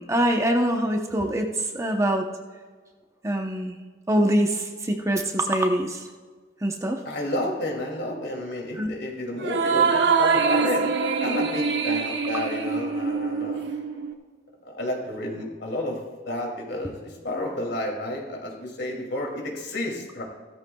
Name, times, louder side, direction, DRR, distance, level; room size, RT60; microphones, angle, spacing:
voice 1, 0.0-2.3 3.2-3.8 4.1-6.1 6.6-7.0 8.7-8.9, right 1 dB, 15° right, 3 dB, 0.8 m, -24 dB
voice 2, 7.0-10.9 11.2-13.6 14.6-16.0 16.2-20.2, left 1 dB, 75° left, 0 dB, 2.6 m, -31 dB
sound 1, 9.4-14.1, right 5 dB, 75° right, 1.0 m, -24 dB
16.0 x 13.5 x 2.3 m, 1.5 s
head